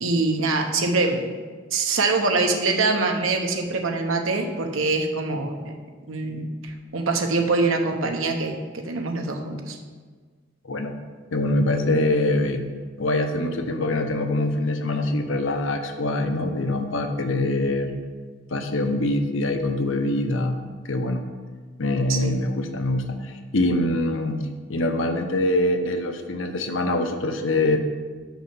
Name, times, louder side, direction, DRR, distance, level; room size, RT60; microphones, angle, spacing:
voice 1, 0.0-1.2 1.7-5.7 6.1-8.6 8.8-9.8 22.1-22.3, right 3 dB, 80° right, 4 dB, 1.0 m, -24 dB
voice 2, 10.6-11.0 11.3-12.6 13.0-17.9 18.5-20.6 20.8-21.2 21.8-27.8, left 1 dB, 70° left, 6 dB, 0.8 m, -24 dB
6.1 x 5.5 x 6.9 m, 1.5 s
head